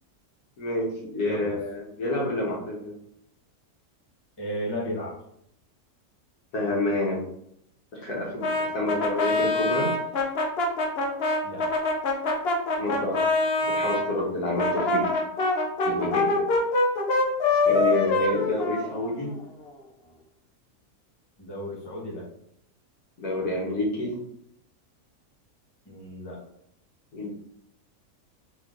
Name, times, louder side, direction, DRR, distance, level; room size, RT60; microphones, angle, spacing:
voice 1, 0.6-2.9 6.5-7.2 7.9-9.9 12.8-13.2 13.6-15.0 15.8-16.4 17.6-19.3 23.2-24.1 27.1-27.3, left 1 dB, 80° left, -2 dB, 1.7 m, -28 dB
voice 2, 1.2-1.6 4.4-5.2 11.4-11.7 21.4-22.3 25.9-26.4, equal, 20° left, -4 dB, 0.9 m, -34 dB
Brass instrument, 8.4-14.1 14.6-19.4, left 2 dB, 55° left, 0.8 m, -25 dB
3.7 x 3.4 x 3.8 m, 0.73 s
omnidirectional pair, 1.6 m